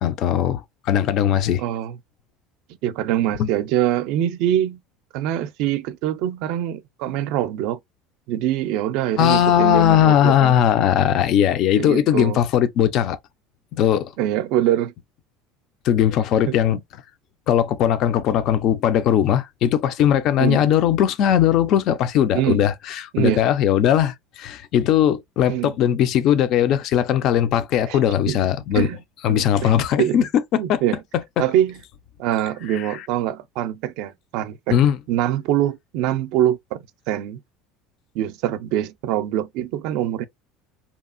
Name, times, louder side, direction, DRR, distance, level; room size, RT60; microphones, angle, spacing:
voice 1, 0.0-1.6 3.4-3.5 9.2-13.2 13.8-14.1 15.8-16.8 17.5-22.7 23.2-28.9 29.2-30.8 31.4-31.5 34.7-35.0, left 10 dB, 40° left, 0.4 m, -19 dB
voice 2, 1.6-2.0 2.8-4.8 5.1-7.8 8.3-10.6 11.8-12.4 14.2-14.9 16.5-16.8 20.4-20.7 22.3-22.6 23.1-23.4 25.5-25.7 27.9-28.0 28.3-28.4 28.7-29.0 29.3-29.7 30.0-30.2 30.5-31.0 31.4-31.8 32.2-34.8 35.1-37.4 38.1-40.2, right 12 dB, 60° right, 0.4 m, -24 dB
2.7 x 2.4 x 2.4 m
cardioid pair, 165°, 0 cm